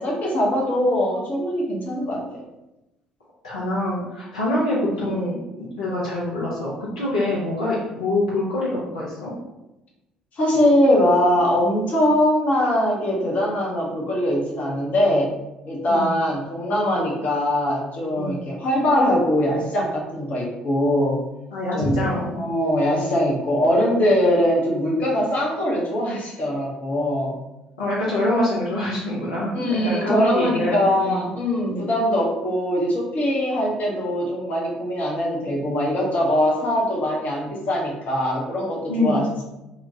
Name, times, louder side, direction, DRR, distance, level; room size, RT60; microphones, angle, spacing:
voice 1, 0.0-2.4 5.0-5.2 10.4-15.3 15.7-21.2 21.7-22.0 22.4-27.3 29.5-39.4, left 1 dB, 45° left, -3 dB, 0.8 m, -22 dB
voice 2, 3.4-9.3 15.9-16.2 18.2-18.4 21.5-22.4 27.8-29.5 29.8-31.3 31.6-31.8 38.9-39.2, left 1 dB, 80° left, -7 dB, 0.6 m, -25 dB
2.8 x 2.2 x 2.6 m, 0.95 s
figure-of-eight pair, 50°, 4 cm